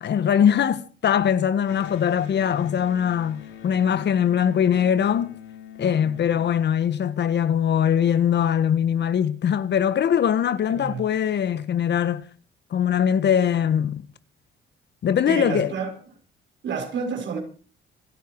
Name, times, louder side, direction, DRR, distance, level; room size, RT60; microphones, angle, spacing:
voice 1, 0.0-5.4 5.8-12.2 12.7-14.0 15.0-15.7, left 8 dB, 60° left, 1.5 m, -22 dB
Electric guitar, 1.6-7.1, left 8 dB, 80° left, 5.7 m, -43 dB
voice 2, 10.7-11.0 15.3-15.9 16.6-17.4, right 5 dB, 65° right, 6.3 m, -29 dB
28.0 x 9.4 x 4.8 m
cardioid pair, 90°, 20 cm